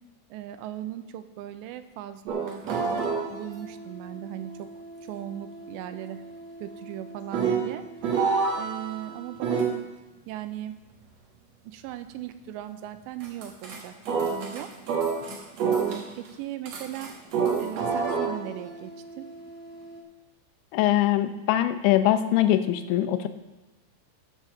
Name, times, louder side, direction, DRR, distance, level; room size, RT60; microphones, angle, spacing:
voice 1, 0.3-4.7 5.1-6.2 6.6-7.9 8.5-9.8 10.3-10.8 11.7-14.7 15.6-17.1 17.6-18.9 19.2-19.3, right 12 dB, 85° right, 10 dB, 2.7 m, -38 dB
sound 1, 2.3-9.8 13.2-13.8 14.0-16.3 16.6-20.0, right 5 dB, 65° right, 1.7 m, -30 dB
voice 2, 20.7-23.3, left 13 dB, 85° left, 9 dB, 3.0 m, -22 dB
13.5 x 5.7 x 6.2 m, 1.1 s
omnidirectional pair, 5.2 m